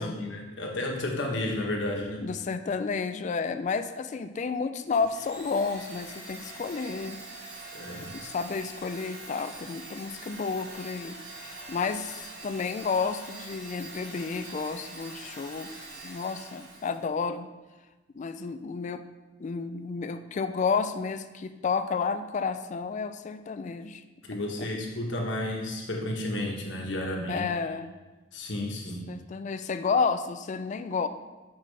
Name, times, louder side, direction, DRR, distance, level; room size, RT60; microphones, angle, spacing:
voice 1, 0.0-2.2 7.7-8.1 24.2-27.5 28.3-29.0, left 1 dB, 65° left, 0 dB, 1.2 m, -32 dB
voice 2, 2.2-7.2 7.5-7.7 8.1-15.7 16.0-17.5 18.2-19.0 19.4-24.0 24.3-24.7 27.3-27.9 29.1-31.1, left 5 dB, 40° left, 9 dB, 0.3 m, -31 dB
Domestic sounds home sounds, 4.9-17.0, right 2 dB, 65° right, 2.4 m, -44 dB
7.4 x 5.8 x 3.3 m, 1.2 s
head